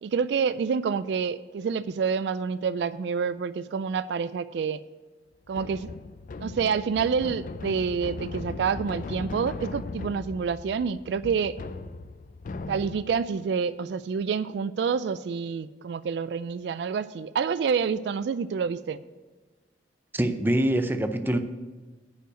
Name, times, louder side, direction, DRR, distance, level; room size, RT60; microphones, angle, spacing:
voice 1, 0.0-4.8 5.5-5.9 6.4-11.5 12.7-19.0, right 6 dB, 65° right, 15 dB, 0.3 m, -28 dB
sound 1, 5.5-13.3, left 3 dB, 45° left, 0.4 m, -38 dB
voice 2, 20.1-21.4, right 1 dB, 10° right, 7 dB, 0.5 m, -24 dB
10.0 x 5.6 x 7.8 m, 1.3 s
head